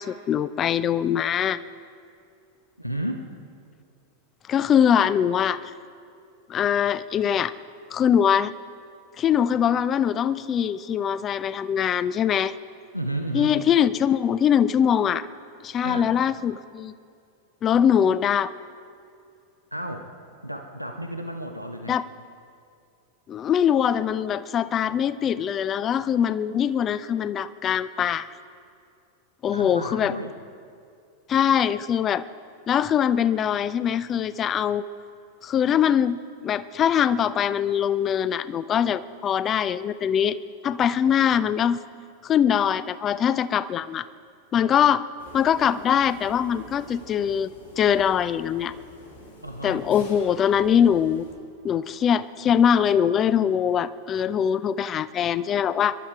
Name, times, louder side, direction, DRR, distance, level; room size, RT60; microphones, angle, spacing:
voice 1, 0.0-1.6 4.5-5.6 6.5-7.5 7.9-8.5 9.2-12.5 13.3-15.3 15.6-16.9 17.6-18.5 21.9-22.0 23.3-28.3 29.4-30.1 31.3-32.2 32.7-34.9 35.4-40.4 40.6-41.8 42.2-44.1 44.5-45.0 45.3-47.5 47.8-48.7 49.6-51.3 51.6-56.0, left 8 dB, 25° left, 17 dB, 0.5 m, -22 dB
voice 2, 2.8-3.3 12.9-13.6 15.8-16.1 19.7-20.1 20.4-22.0 29.5-30.4 49.4-49.9, right 1 dB, 90° left, 5 dB, 0.9 m, -32 dB
sound 1, 45.2-51.3, equal, 75° left, 4.4 m, -47 dB
22.5 x 12.0 x 4.8 m, 2.4 s
figure-of-eight pair, 90°, 0 cm